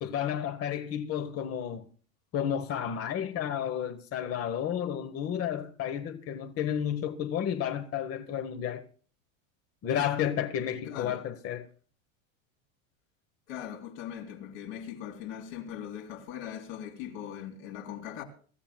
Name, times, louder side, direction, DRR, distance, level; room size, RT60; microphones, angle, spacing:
voice 1, 0.0-1.9 2.3-8.8 9.8-11.7, left 9 dB, 35° left, 1.0 m, -32 dB
voice 2, 10.9-11.2 13.5-18.2, left 9 dB, 70° left, 3.4 m, -40 dB
24.0 x 13.5 x 2.2 m
supercardioid pair, 125°, 41 cm